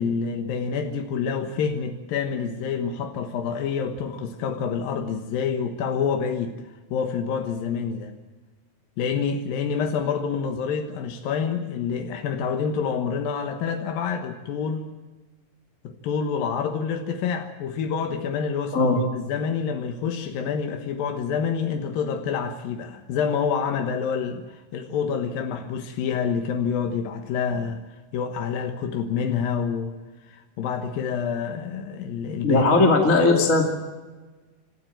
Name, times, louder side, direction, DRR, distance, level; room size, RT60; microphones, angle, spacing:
voice 1, 0.0-6.5 6.9-8.1 9.0-14.9 15.8-27.8 28.1-29.9 30.3-32.7, left 6 dB, 85° left, 5 dB, 3.1 m, -27 dB
voice 2, 32.4-33.6, left 3 dB, 25° left, 1 dB, 2.3 m, -18 dB
26.5 x 13.5 x 9.1 m, 1.2 s
omnidirectional pair, 4.0 m